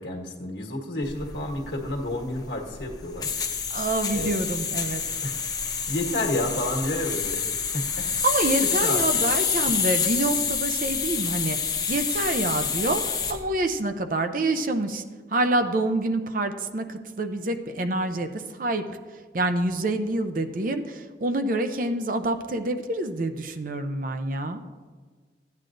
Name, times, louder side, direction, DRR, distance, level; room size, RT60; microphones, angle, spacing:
voice 1, 0.0-3.3 4.1-4.3 5.2-5.4 5.9-8.1 8.8-9.0, left 1 dB, 75° left, -1 dB, 1.4 m, -30 dB
sound 1, 1.0-13.4, left 6 dB, 20° left, 0.8 m, -28 dB
voice 2, 3.7-5.0 8.2-15.0 15.3-19.0 19.3-24.6, right 2 dB, 50° right, 8 dB, 0.5 m, -27 dB
14.5 x 9.5 x 2.6 m, 1.5 s
head